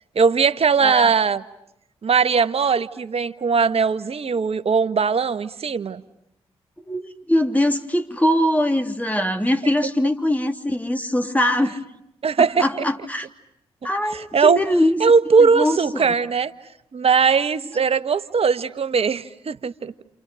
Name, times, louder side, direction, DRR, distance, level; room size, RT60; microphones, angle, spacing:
voice 1, 0.1-1.4 2.0-6.0 12.2-12.7 14.1-14.6 15.0-16.5 16.9-19.9, right 5 dB, 55° right, 11 dB, 1.4 m, -19 dB
voice 2, 6.8-11.8 12.6-13.3 13.8-15.0 15.4-16.1, left 1 dB, 10° left, 5 dB, 3.2 m, -22 dB
29.0 x 28.5 x 6.4 m, 0.81 s
hypercardioid pair, 40°, 12 cm